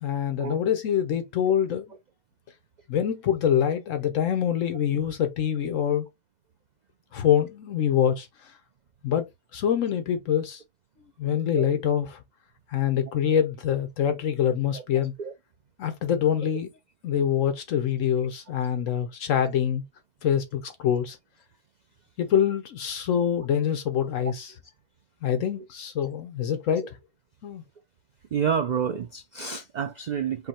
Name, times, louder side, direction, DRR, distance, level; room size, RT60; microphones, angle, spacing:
voice 1, 0.0-1.9 2.9-6.1 7.1-8.5 9.0-9.3 9.5-10.6 11.2-12.2 12.7-15.1 15.8-16.7 17.0-19.8 20.2-21.2 22.2-24.5 25.2-27.0 27.4-27.6, left 9 dB, 70° left, 1.1 m, -25 dB
voice 2, 28.3-30.5, right 7 dB, 65° right, 0.4 m, -29 dB
5.4 x 2.1 x 4.2 m
omnidirectional pair, 1.4 m